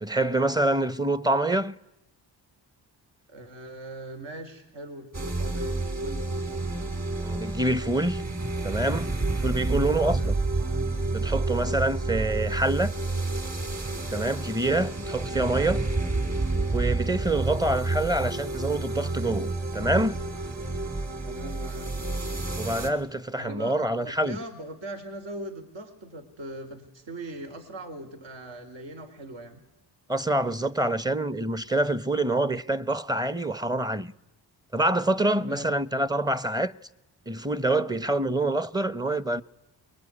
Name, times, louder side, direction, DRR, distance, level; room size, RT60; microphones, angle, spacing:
voice 1, 0.0-1.8 7.2-8.2 8.6-9.1 9.4-10.4 11.1-12.9 14.1-15.9 16.7-20.1 22.6-24.4 30.1-34.1 34.7-36.7 37.3-39.4, right 1 dB, 10° right, 0.9 m, -26 dB
voice 2, 3.3-6.3 9.5-9.7 10.0-10.9 17.6-17.7 21.2-21.9 23.3-29.6 35.3-35.8, right 1 dB, 65° right, 4.3 m, -40 dB
sound 1, 5.1-22.9, right 2 dB, 35° right, 5.4 m, -29 dB
25.0 x 22.5 x 9.9 m
cardioid pair, 80°, 46 cm